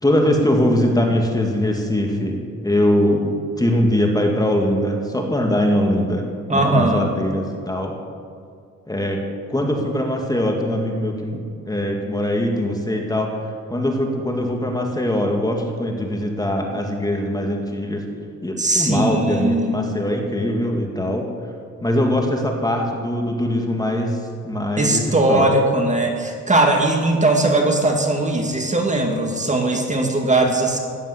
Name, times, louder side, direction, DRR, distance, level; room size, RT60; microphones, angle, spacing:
voice 1, 0.0-3.3 3.6-7.9 8.9-9.2 9.5-18.0 18.4-21.3 21.8-24.2 24.4-25.5, left 1 dB, 10° left, 1 dB, 2.1 m, -22 dB
voice 2, 6.5-7.1 18.6-19.8 24.8-30.8, right 2 dB, 25° right, 2 dB, 2.2 m, -19 dB
15.5 x 11.0 x 7.9 m, 2.3 s
cardioid pair, 110°, 31 cm